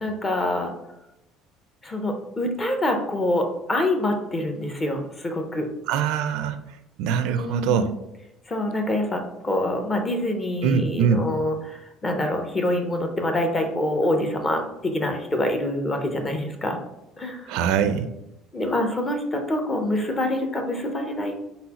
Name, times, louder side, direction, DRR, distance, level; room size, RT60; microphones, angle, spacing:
voice 1, 0.0-0.7 1.8-5.7 7.3-7.9 8.5-16.8 17.2-17.5 18.5-21.4, left 1 dB, 15° left, 5 dB, 0.6 m, -26 dB
voice 2, 5.9-6.6 7.0-7.9 10.6-11.3 17.5-18.1, right 7 dB, 75° right, 10 dB, 0.4 m, -23 dB
4.1 x 4.0 x 2.8 m, 0.90 s
cardioid pair, 170°, 0 cm